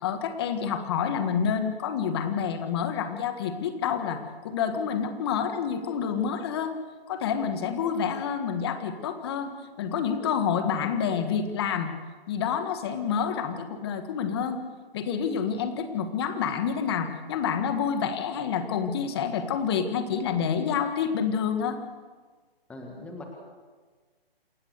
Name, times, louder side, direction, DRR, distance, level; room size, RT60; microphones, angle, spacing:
voice 1, 0.0-6.8 7.1-11.9 12.3-14.6 14.9-21.8, left 7 dB, 25° left, 9 dB, 1.6 m, -28 dB
voice 2, 22.7-23.2, left 2 dB, 5° left, 1 dB, 1.8 m, -40 dB
28.0 x 13.5 x 8.1 m, 1.4 s
hypercardioid pair, 160°, 30 cm